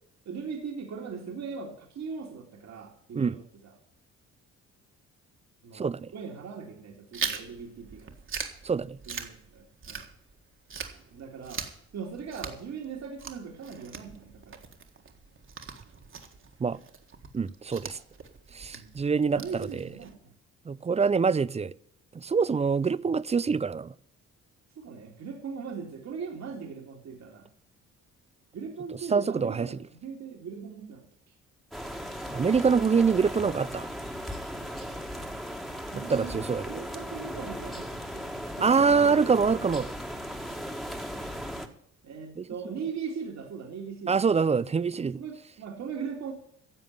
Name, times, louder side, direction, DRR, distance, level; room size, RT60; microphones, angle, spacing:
voice 1, 0.3-3.8 5.6-5.9 6.1-8.1 9.1-10.0 11.1-11.6 11.9-14.6 18.7-19.0 19.3-20.3 24.8-27.5 28.5-31.3 35.8-38.3 38.6-39.3 42.0-44.7 45.1-46.3, right 6 dB, 65° right, 2.4 m, -39 dB
voice 2, 5.7-6.1 8.6-9.0 16.6-16.8 17.3-18.0 18.5-19.9 20.7-21.7 22.1-23.9 29.1-29.8 32.3-33.9 35.9-36.8 38.6-39.9 42.4-42.5 44.1-45.2, right 5 dB, 20° right, 0.4 m, -25 dB
Chewing mastication, 7.1-10.4 10.7-20.1, right 6 dB, 40° right, 1.8 m, -40 dB
sound 1, 31.7-41.7, equal, ahead, 1.7 m, -37 dB
11.5 x 7.2 x 9.3 m
cardioid pair, 90°, 30 cm